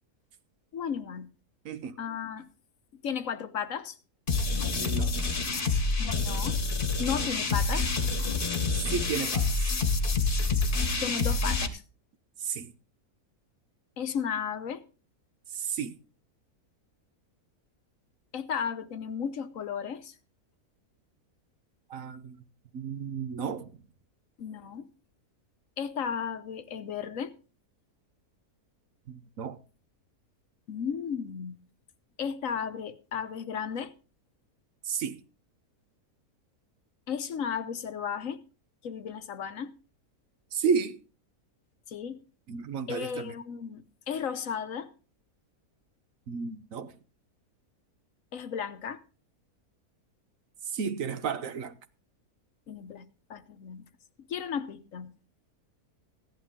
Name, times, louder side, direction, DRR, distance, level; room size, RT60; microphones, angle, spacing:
voice 1, 0.7-1.3 2.0-2.5 3.0-3.9 6.0-6.6 7.0-7.9 11.0-11.8 14.0-14.8 18.3-20.1 24.4-24.9 25.8-27.3 30.7-31.6 32.2-33.9 37.1-38.4 38.8-39.7 41.9-42.2 42.9-44.9 48.3-49.0 52.7-53.9 54.3-55.1, left 7 dB, 65° left, 1.2 m, -34 dB
sound 1, 4.3-11.7, left 3 dB, 35° left, 1.4 m, -27 dB
voice 2, 4.7-5.2 8.7-9.8 12.4-12.7 15.5-15.9 21.9-22.4 22.7-23.7 29.1-29.6 34.8-35.2 40.5-41.0 42.5-43.3 46.3-46.9 50.7-51.7, right 6 dB, 65° right, 1.2 m, -32 dB
15.5 x 10.5 x 3.7 m
omnidirectional pair, 1.6 m